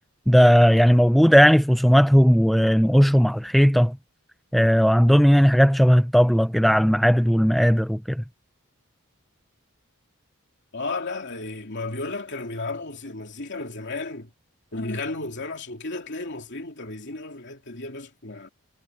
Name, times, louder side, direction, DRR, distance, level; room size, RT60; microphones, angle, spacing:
voice 1, 0.3-4.0 4.5-8.2, equal, ahead, 0.3 m, -17 dB
voice 2, 10.7-14.3 14.7-18.5, left 3 dB, 55° left, 3.0 m, -33 dB
head